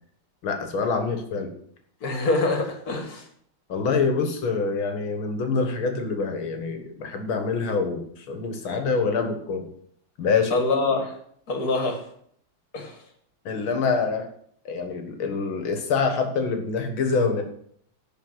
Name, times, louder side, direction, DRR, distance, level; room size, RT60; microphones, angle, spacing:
voice 1, 0.4-1.5 3.7-9.7 10.2-10.6 13.5-14.3 14.7-17.4, left 4 dB, 85° left, 5 dB, 2.4 m, -25 dB
voice 2, 2.0-3.3 10.5-11.2 11.5-12.0 12.7-13.0, left 3 dB, 50° left, 4 dB, 2.4 m, -25 dB
10.5 x 5.0 x 7.9 m, 0.64 s
omnidirectional pair, 2.2 m